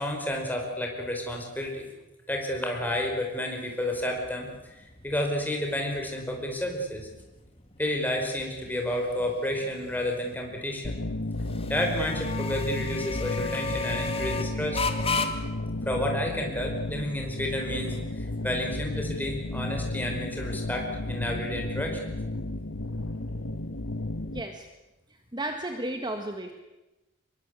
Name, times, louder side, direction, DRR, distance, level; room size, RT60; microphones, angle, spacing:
voice 1, 0.0-1.9 2.3-4.7 5.0-7.1 7.8-11.0 11.7-14.8 15.8-18.0 18.4-22.2, left 1 dB, 10° left, 1 dB, 5.1 m, -30 dB
sound 1, 4.0-21.2, left 4 dB, 25° left, 2.1 m, -37 dB
sound 2, 10.8-24.4, left 2 dB, 65° left, 1.5 m, -33 dB
voice 2, 24.3-24.7 25.1-26.5, right 1 dB, 20° right, 5 dB, 1.7 m, -34 dB
25.5 x 22.5 x 8.4 m, 1.0 s
head